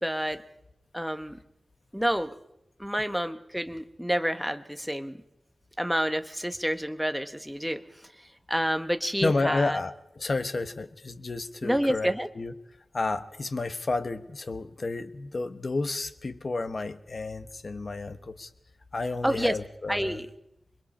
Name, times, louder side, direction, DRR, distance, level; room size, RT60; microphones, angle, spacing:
voice 1, 0.0-0.4 0.9-1.4 1.9-2.3 2.8-5.2 5.8-7.8 8.5-9.8 11.6-12.3 19.2-19.6 19.9-20.3, equal, ahead, 8 dB, 1.2 m, -28 dB
voice 2, 9.2-12.5 12.9-18.5 18.9-20.2, left 3 dB, 50° left, 10 dB, 1.2 m, -31 dB
27.5 x 22.0 x 4.4 m, 0.84 s
wide cardioid pair, 90°, 0 cm